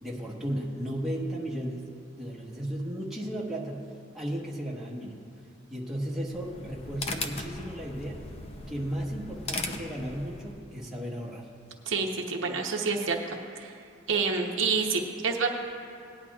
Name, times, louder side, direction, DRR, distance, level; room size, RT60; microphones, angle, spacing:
voice 1, 0.0-1.9 2.2-3.8 4.1-5.2 5.7-8.3 8.7-11.5, equal, ahead, -6 dB, 1.2 m, -35 dB
sound 1, 6.2-10.6, left 2 dB, 30° left, 0.6 m, -38 dB
voice 2, 11.9-13.2 13.6-13.7 14.1-15.5, right 4 dB, 65° right, 1 dB, 1.0 m, -28 dB
19.0 x 10.0 x 2.4 m, 2.5 s
head